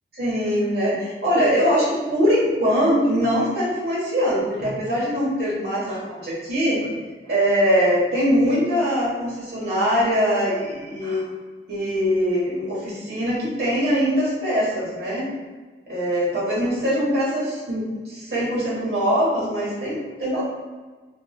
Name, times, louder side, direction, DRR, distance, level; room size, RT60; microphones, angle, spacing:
voice 1, 0.1-6.9 7.2-11.2 11.7-15.3 15.9-20.4, equal, 65° right, -7 dB, 1.3 m, -22 dB
3.6 x 3.0 x 2.3 m, 1.4 s
head